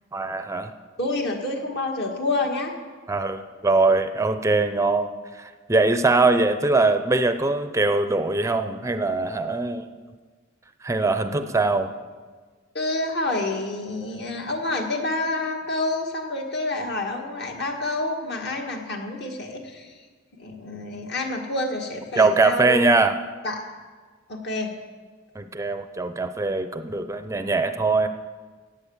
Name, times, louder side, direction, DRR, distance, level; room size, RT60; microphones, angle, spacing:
voice 1, 0.1-0.7 3.1-5.1 5.4-9.9 10.8-11.9 22.2-23.2 25.4-28.1, right 3 dB, 15° right, 9 dB, 0.5 m, -22 dB
voice 2, 1.0-2.7 11.4-11.5 12.7-19.9 20.4-22.9 23.4-23.6 24.3-24.7, left 2 dB, 60° left, 2 dB, 2.0 m, -28 dB
15.5 x 8.9 x 7.2 m, 1.5 s
head